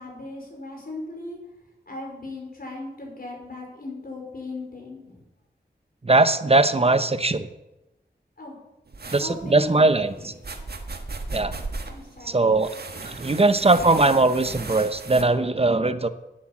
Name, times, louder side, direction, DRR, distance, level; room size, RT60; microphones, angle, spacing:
voice 1, 0.0-1.4 1.9-5.2 8.4-8.5 9.2-10.3 11.9-12.4, left 2 dB, 55° left, 0 dB, 4.9 m, -38 dB
voice 2, 6.0-7.5 9.1-10.3 11.3-11.5 12.3-12.7 13.0-16.1, right 2 dB, 35° right, 11 dB, 0.9 m, -20 dB
sound 1, 8.9-15.2, right 3 dB, 65° right, 1.4 m, -37 dB
9.8 x 8.6 x 7.4 m, 0.97 s
cardioid pair, 50°, 18 cm